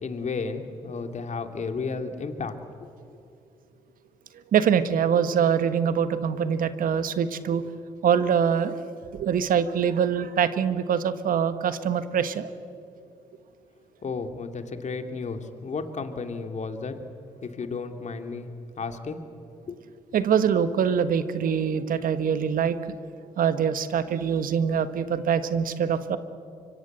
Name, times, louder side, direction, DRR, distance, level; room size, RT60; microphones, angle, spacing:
voice 1, 0.0-2.5 14.0-16.9 17.4-18.5 18.8-19.2 19.7-19.8, left 4 dB, 50° left, 6 dB, 2.6 m, -33 dB
voice 2, 4.5-7.6 8.0-8.8 9.1-12.5 20.1-22.8 23.4-26.2, right 7 dB, 65° right, 12 dB, 1.3 m, -24 dB
25.0 x 23.5 x 8.1 m, 2.5 s
hypercardioid pair, 50°, 15 cm